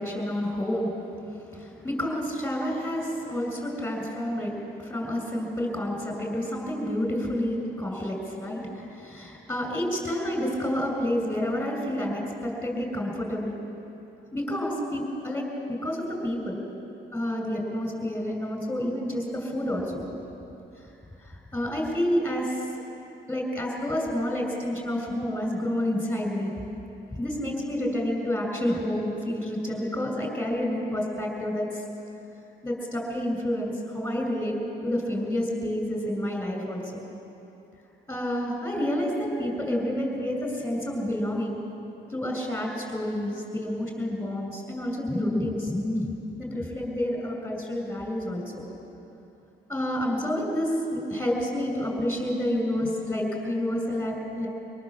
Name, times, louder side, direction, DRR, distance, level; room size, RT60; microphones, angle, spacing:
voice 1, 0.0-13.5 14.3-16.6 17.1-20.0 20.8-20.9 21.2-22.6 23.3-26.5 27.1-31.8 32.6-34.6 34.8-37.0 38.1-41.6 42.1-46.1 46.4-48.6 49.7-54.5, left 1 dB, 10° left, 1 dB, 6.6 m, -29 dB
25.0 x 18.5 x 7.4 m, 2.9 s
cardioid pair, 90°, 20 cm